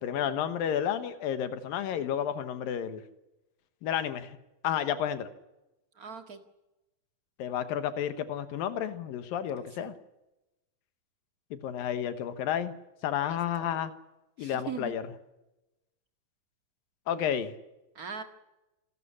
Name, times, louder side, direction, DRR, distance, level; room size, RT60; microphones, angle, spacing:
voice 1, 0.0-3.0 3.8-4.3 4.6-5.3 7.4-9.9 11.5-12.7 13.0-13.9 14.4-15.0 17.1-17.5, left 9 dB, 80° left, 11 dB, 3.0 m, -31 dB
voice 2, 6.0-6.4 9.6-9.9 13.3-13.8 14.4-14.9 17.9-18.2, right 6 dB, 35° right, 7 dB, 1.5 m, -41 dB
27.0 x 13.0 x 9.9 m, 0.98 s
omnidirectional pair, 4.0 m